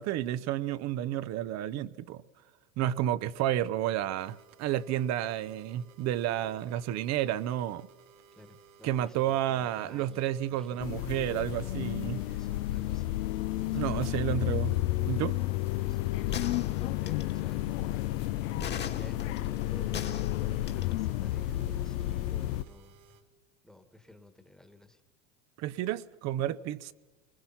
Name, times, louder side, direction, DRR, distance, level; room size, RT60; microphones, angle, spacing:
voice 1, 0.0-2.2 2.8-7.9 8.8-12.2 13.7-14.7 15.1-15.4 25.6-26.9, right 12 dB, 45° right, 0.7 m, -31 dB
sound 1, 4.2-23.2, right 7 dB, 70° right, 2.8 m, -59 dB
voice 2, 8.3-10.9 12.0-13.2 13.7-14.5 15.4-18.0 18.9-23.2 23.6-25.0, left 1 dB, ahead, 1.4 m, -53 dB
sound 2, 10.8-22.6, left 15 dB, 80° left, 0.7 m, -31 dB
sound 3, 16.3-17.4 18.6-20.9, left 7 dB, 25° left, 1.5 m, -39 dB
25.5 x 20.5 x 5.7 m
supercardioid pair, 130°, 38 cm